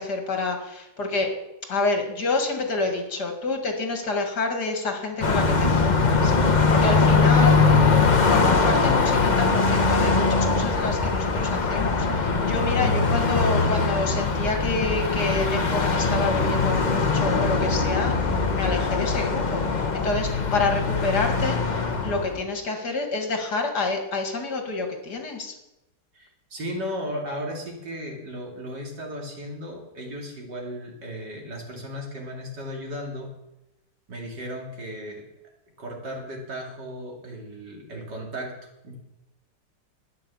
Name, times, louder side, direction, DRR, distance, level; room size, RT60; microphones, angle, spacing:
voice 1, 0.0-1.3 1.7-7.9 8.2-25.6, left 3 dB, 65° left, 3 dB, 2.7 m, -28 dB
Car passing by, 5.2-22.4, left 4 dB, 30° left, 0.9 m, -21 dB
voice 2, 26.1-33.3 34.1-35.3 35.8-38.5 38.8-39.0, equal, 70° right, 0 dB, 3.3 m, -35 dB
12.5 x 9.4 x 7.2 m, 0.92 s
omnidirectional pair, 1.9 m